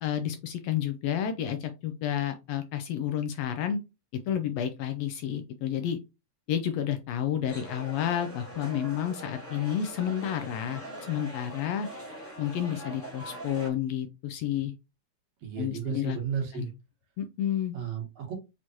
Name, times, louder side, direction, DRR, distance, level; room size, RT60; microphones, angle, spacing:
voice 1, 0.0-3.8 4.3-6.0 6.5-10.8 11.1-11.9 12.4-14.7 15.6-16.2 16.5-16.7 17.2-17.8, left 10 dB, 80° left, 7 dB, 1.5 m, -30 dB
sound 1, 7.5-13.7, equal, 10° left, 0.7 m, -42 dB
voice 2, 15.4-16.7 17.7-18.3, right 8 dB, 65° right, 0 dB, 2.2 m, -33 dB
6.3 x 3.0 x 2.6 m, 0.26 s
omnidirectional pair, 3.4 m